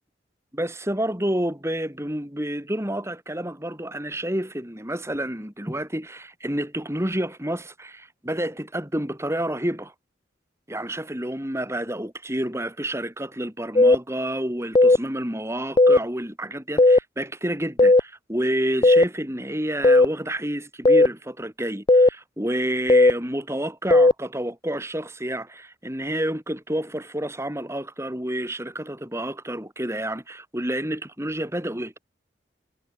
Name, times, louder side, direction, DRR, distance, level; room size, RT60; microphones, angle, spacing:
voice 1, 0.5-9.9 10.7-32.0, right 1 dB, 15° right, 6.1 m, -29 dB
sound 1, 13.8-14.0 14.8-15.0 15.8-16.0 16.8-17.0 17.8-18.0 18.8-19.0 19.8-20.1 20.9-21.1 21.9-22.1 22.9-23.1 23.9-24.1, left 2 dB, 25° left, 0.6 m, -14 dB
head